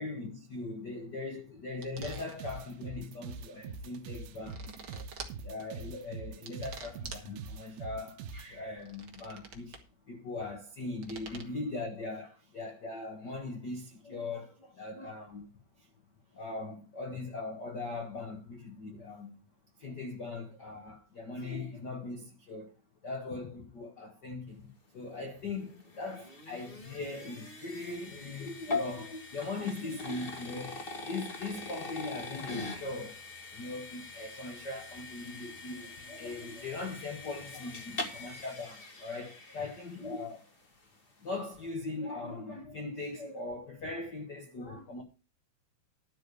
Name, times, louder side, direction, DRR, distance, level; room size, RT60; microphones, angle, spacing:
voice 1, 0.0-5.2 5.4-9.8 10.1-15.5 15.8-15.9 16.3-19.4 19.8-22.7 23.0-33.2 33.5-40.5 41.2-45.0, left 3 dB, 75° left, 0.9 m, -40 dB
sound 1, 1.8-2.6 4.1-5.4 6.5-7.3 8.7-9.9 11.0-11.4, right 4 dB, 45° right, 1.4 m, -47 dB
sound 2, 2.0-8.5, right 5 dB, 90° right, 2.8 m, -43 dB
sound 3, 25.2-40.4, left 3 dB, 55° left, 0.6 m, -42 dB
12.0 x 4.9 x 8.1 m
omnidirectional pair, 4.3 m